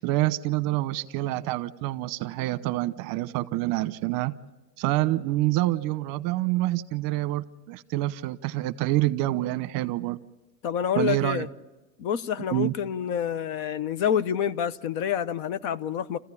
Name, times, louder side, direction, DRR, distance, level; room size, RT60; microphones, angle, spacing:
voice 1, 0.0-4.3 4.8-10.2 10.9-11.5 12.5-12.7, right 17 dB, 45° right, 1.0 m, -27 dB
voice 2, 10.6-11.5 12.0-16.2, left 9 dB, 55° left, 1.0 m, -27 dB
28.0 x 15.0 x 9.8 m
supercardioid pair, 145°, 49 cm